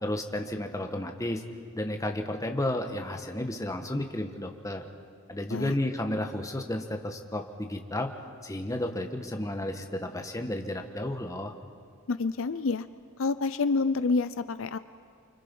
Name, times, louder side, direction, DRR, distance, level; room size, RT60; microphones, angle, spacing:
voice 1, 0.0-1.4 1.7-4.9 5.3-8.1 8.4-11.5, left 1 dB, 15° left, 5 dB, 1.4 m, -32 dB
voice 2, 12.1-12.9 13.2-14.8, left 4 dB, 65° left, 12 dB, 0.6 m, -28 dB
29.0 x 25.5 x 5.5 m, 2.1 s
head